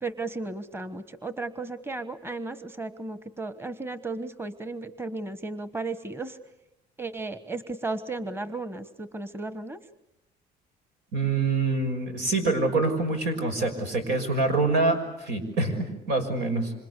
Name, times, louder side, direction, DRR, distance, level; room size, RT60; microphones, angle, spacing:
voice 1, 0.0-6.4 7.0-9.8, right 3 dB, 15° right, 12 dB, 1.4 m, -34 dB
voice 2, 11.1-16.7, right 3 dB, 90° right, 6 dB, 6.1 m, -25 dB
27.0 x 26.5 x 8.4 m, 0.88 s
cardioid pair, 110°, 17 cm